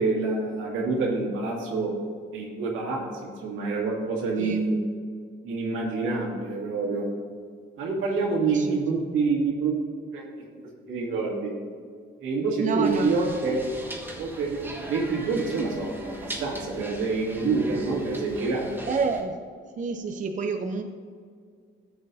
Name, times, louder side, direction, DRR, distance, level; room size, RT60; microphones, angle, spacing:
voice 1, 0.0-1.9 2.3-4.8 5.4-7.1 7.8-9.7 10.1-10.6 10.9-11.5 12.2-13.6 14.2-18.8, right 4 dB, 85° right, -2 dB, 2.1 m, -27 dB
voice 2, 8.5-8.8 12.6-13.3 18.8-19.4 19.8-20.8, right 4 dB, 40° right, 5 dB, 0.6 m, -29 dB
sound 1, 12.8-19.2, right 1 dB, 10° right, 1.3 m, -38 dB
13.0 x 7.9 x 2.7 m, 2.1 s
cardioid pair, 90°, 20 cm